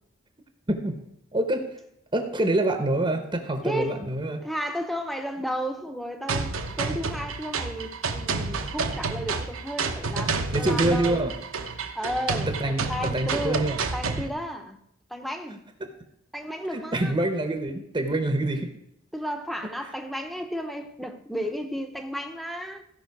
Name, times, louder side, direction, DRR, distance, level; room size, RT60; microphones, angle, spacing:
voice 1, 0.7-1.0 1.3-1.7 2.1-4.4 8.5-8.7 10.5-11.3 12.6-13.8 16.7-18.7, right 1 dB, 25° right, 0.9 m, -26 dB
voice 2, 3.6-4.0 4.4-11.2 12.0-14.8 15.1-15.6 16.3-17.2 19.1-22.8, equal, ahead, 0.8 m, -33 dB
sound 1, 6.3-14.3, right 4 dB, 75° right, 1.0 m, -29 dB
15.5 x 5.5 x 4.7 m
head